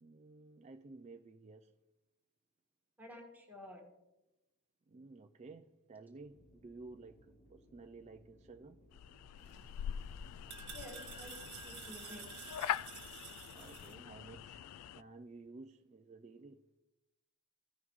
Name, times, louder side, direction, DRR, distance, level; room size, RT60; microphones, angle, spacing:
voice 1, 0.0-1.7 4.9-8.8 13.5-14.7 15.0-16.6, right 3 dB, 30° right, 0.3 m, -53 dB
voice 2, 3.0-3.8 10.7-11.3 11.6-12.5, left 1 dB, 10° right, 1.7 m, -51 dB
sound 1, 6.2-11.8, equal, 45° left, 2.7 m, -65 dB
sound 2, 8.9-15.0, left 10 dB, 90° left, 0.3 m, -43 dB
sound 3, 9.4-13.9, right 7 dB, 50° right, 1.6 m, -51 dB
16.0 x 5.7 x 3.1 m
head